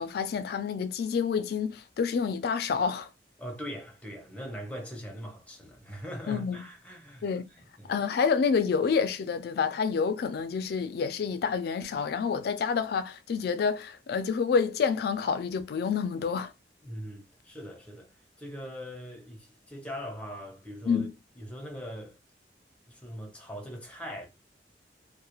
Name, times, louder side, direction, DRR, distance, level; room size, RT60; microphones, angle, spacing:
voice 1, 0.0-3.1 6.3-6.6 7.2-7.5 7.9-16.5 20.9-21.1, left 6 dB, 60° left, 0.3 m, -28 dB
voice 2, 3.4-7.3 7.8-7.9 16.8-18.1 18.4-22.2 22.9-24.3, equal, 5° left, 0.6 m, -41 dB
2.3 x 2.0 x 2.9 m
head